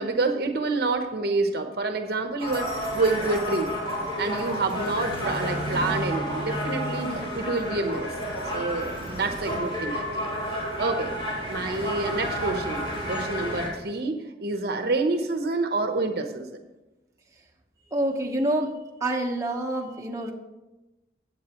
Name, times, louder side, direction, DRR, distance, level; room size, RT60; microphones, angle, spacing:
voice 1, 0.0-3.7 4.2-8.1 8.5-10.3 10.8-11.1 11.5-16.6, right 3 dB, 60° right, 6 dB, 0.9 m, -28 dB
sound 1, 2.4-13.7, equal, 30° left, 3.5 m, -31 dB
voice 2, 17.9-18.7 19.0-20.3, right 1 dB, 15° right, -1 dB, 1.0 m, -27 dB
15.5 x 8.5 x 3.0 m, 1.0 s
head